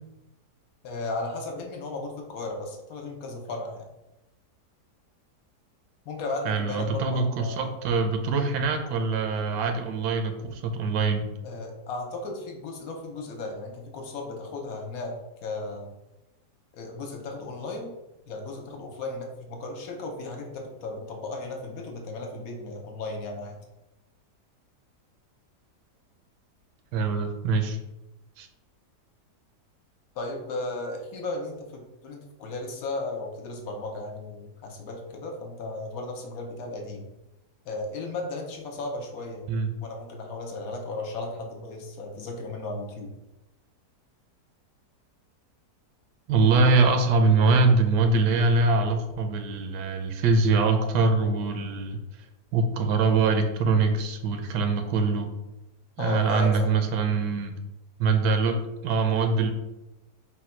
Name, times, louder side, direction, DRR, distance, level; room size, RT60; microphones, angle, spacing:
voice 1, 0.8-3.9 6.0-7.7 11.4-15.1 15.4-15.9 16.7-17.9 18.3-23.6 30.1-37.1 37.6-39.4 39.8-43.1 56.0-56.7, left 2 dB, 65° left, 1 dB, 1.1 m, -35 dB
voice 2, 6.5-11.3 26.9-27.8 28.4-28.5 39.5-39.7 46.3-52.0 52.5-55.3 56.0-57.5 58.0-58.6 58.8-59.5, right 4 dB, 85° right, 6 dB, 1.2 m, -23 dB
4.0 x 2.2 x 4.3 m, 1.0 s
omnidirectional pair, 1.8 m